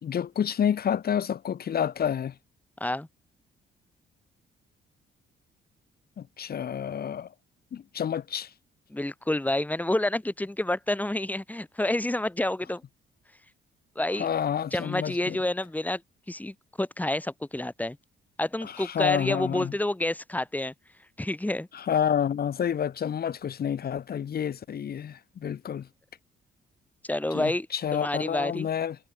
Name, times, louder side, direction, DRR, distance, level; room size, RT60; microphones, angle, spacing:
voice 1, 0.0-2.3 6.2-7.3 7.7-8.5 14.2-15.4 18.6-19.7 21.7-25.9 27.3-29.0, left 8 dB, 50° left, 1.3 m, -29 dB
voice 2, 8.9-12.8 14.0-14.3 14.7-16.0 16.3-18.0 18.4-20.7 21.2-21.7 27.1-27.7 27.9-28.7, left 1 dB, 10° left, 2.8 m, -28 dB
cardioid pair, 90°, 20 cm